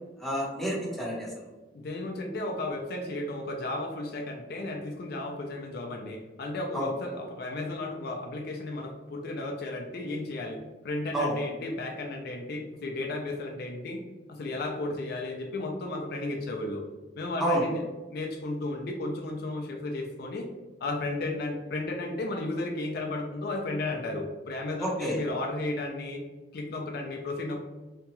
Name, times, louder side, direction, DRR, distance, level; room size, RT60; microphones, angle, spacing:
voice 1, 0.2-1.3 6.7-6.9 11.1-11.3 17.4-17.6 24.8-25.2, equal, ahead, -6 dB, 0.8 m, -29 dB
voice 2, 1.7-10.6 10.8-14.0 14.3-16.8 17.2-17.8 18.1-20.5 20.8-26.2 26.5-27.6, left 2 dB, 60° left, 2 dB, 0.4 m, -34 dB
2.9 x 2.2 x 2.9 m, 1.2 s
head